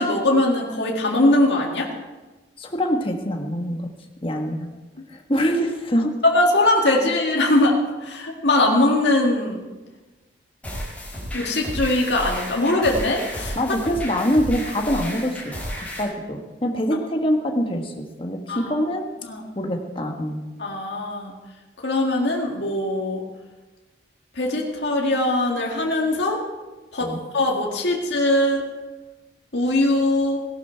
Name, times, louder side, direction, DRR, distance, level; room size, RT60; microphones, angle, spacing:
voice 1, 0.0-1.9 6.2-9.6 11.3-13.6 18.5-18.7 19.3-19.5 20.6-21.3 21.8-23.2 24.4-26.4 26.9-28.6 29.5-30.4, left 1 dB, 75° left, -1 dB, 1.9 m, -21 dB
voice 2, 2.6-3.9 4.2-4.7 5.1-6.1 13.5-15.4 15.8-19.1 19.5-20.4 27.0-27.2, equal, 30° left, 3 dB, 1.4 m, -24 dB
sound 1, 10.6-16.0, equal, 10° left, 5.9 m, -32 dB
17.5 x 11.5 x 4.5 m, 1.2 s
head